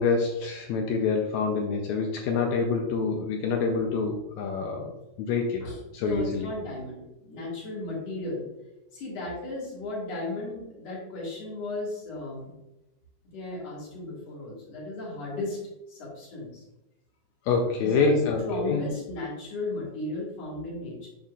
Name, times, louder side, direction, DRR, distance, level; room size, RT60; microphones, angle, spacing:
voice 1, 0.0-4.9 5.2-5.6 5.9-6.5 17.5-18.8, left 4 dB, 75° left, 2 dB, 1.8 m, -26 dB
voice 2, 5.6-8.5 8.9-12.5 13.3-15.6 15.9-16.6 17.8-21.1, left 2 dB, 55° left, -5 dB, 3.1 m, -35 dB
10.0 x 4.1 x 2.4 m, 0.96 s
omnidirectional pair, 3.6 m